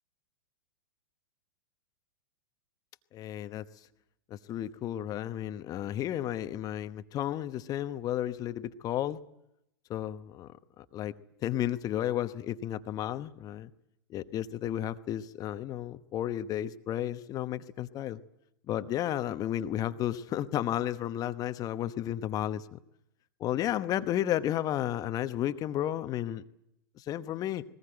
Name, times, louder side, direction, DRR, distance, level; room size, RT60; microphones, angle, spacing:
voice 1, 3.1-3.7 4.3-9.2 9.9-11.1 11.4-13.7 14.1-18.2 18.7-22.8 23.4-26.4 27.0-27.6, left 12 dB, 30° left, 11 dB, 1.0 m, -33 dB
21.0 x 19.5 x 9.0 m, 0.81 s
figure-of-eight pair, 105°, 13 cm